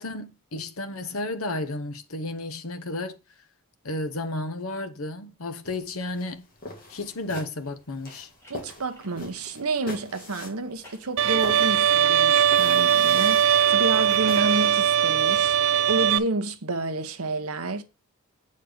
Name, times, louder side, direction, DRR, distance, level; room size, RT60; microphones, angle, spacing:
voice 1, 0.0-3.2 3.8-6.5 6.9-8.3, left 2 dB, 75° left, 1.0 m, -32 dB
sound 1, 5.5-9.5 10.4-11.7 13.2-14.0, left 1 dB, 10° left, 2.7 m, -53 dB
sound 2, 5.6-15.7, left 2 dB, 40° left, 2.0 m, -44 dB
voice 2, 8.5-17.8, right 2 dB, 85° right, 1.0 m, -30 dB
Bowed string instrument, 11.2-16.2, right 9 dB, 60° right, 0.3 m, -20 dB
7.7 x 4.3 x 5.0 m
head